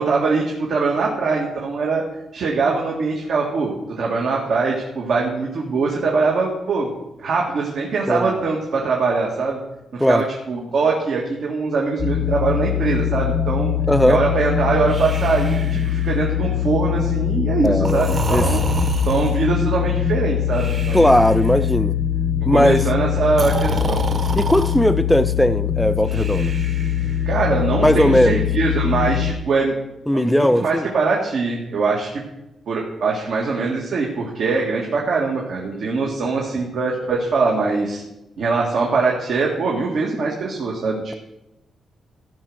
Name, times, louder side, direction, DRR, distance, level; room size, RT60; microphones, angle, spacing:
voice 1, 0.0-2.0 2.3-6.9 7.2-9.6 9.9-13.7 14.1-18.6 19.1-21.1 22.4-24.0 27.3-29.7 30.1-32.2 32.7-38.0 38.4-41.1, right 4 dB, 70° right, 1.9 m, -22 dB
sound 1, 12.0-29.3, left 10 dB, 55° left, 0.7 m, -22 dB
voice 2, 13.9-14.2 17.6-18.5 20.9-22.0 22.4-22.8 24.4-26.5 27.8-28.4 30.1-30.9, equal, 5° left, 0.5 m, -18 dB
Breathing, 14.9-16.4 17.8-19.5 20.5-21.5 23.3-24.8 26.1-27.3, right 3 dB, 40° right, 1.3 m, -28 dB
14.5 x 5.3 x 6.3 m
cardioid pair, 95°, 0 cm